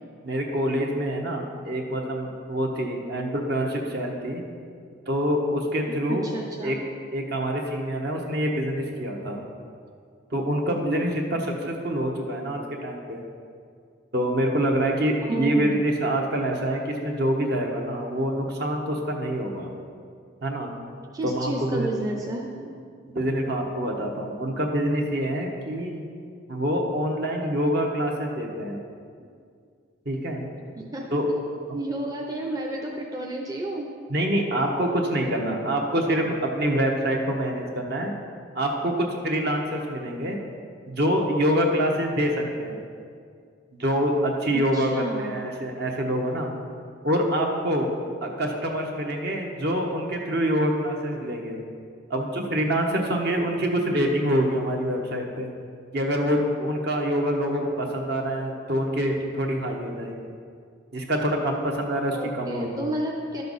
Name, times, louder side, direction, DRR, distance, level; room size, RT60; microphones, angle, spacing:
voice 1, 0.2-4.4 5.1-6.3 6.6-6.8 7.1-9.4 10.3-13.2 14.1-19.7 20.4-20.7 21.2-22.0 23.1-26.0 26.5-28.8 30.0-30.4 31.1-31.3 34.1-38.1 38.5-40.4 40.9-42.8 43.8-46.5 47.0-47.9 48.2-51.6 52.1-55.5 55.9-60.2 60.9-62.7, equal, 50° right, 1 dB, 1.1 m, -26 dB
voice 2, 6.1-6.8 15.3-15.8 21.1-22.8 30.8-31.1 31.7-33.9 44.5-45.4 62.1-63.4, right 1 dB, 20° right, -2 dB, 0.6 m, -31 dB
12.0 x 6.8 x 4.1 m, 2.2 s
head